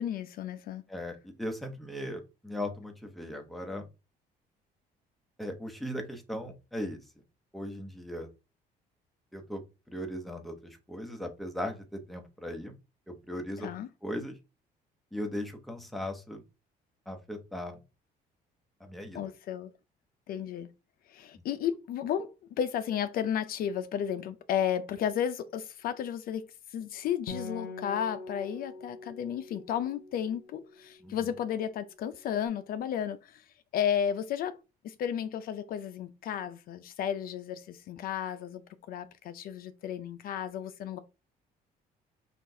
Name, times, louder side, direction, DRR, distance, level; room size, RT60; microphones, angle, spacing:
voice 1, 0.0-0.8 13.6-13.9 19.1-19.7 20.3-20.7 21.1-22.3 22.6-26.5 26.7-33.4 33.7-34.6 34.8-38.6 38.9-41.0, left 9 dB, 60° left, 0.4 m, -33 dB
voice 2, 0.9-3.9 5.4-7.0 7.5-8.3 9.3-12.8 13.1-13.7 14.0-14.4 15.1-16.4 17.1-17.8 18.8-19.3 31.0-31.3, left 1 dB, ahead, 0.9 m, -38 dB
Acoustic guitar, 27.3-31.0, left 3 dB, 80° left, 1.1 m, -43 dB
5.9 x 2.4 x 2.7 m
cardioid pair, 110°, 17 cm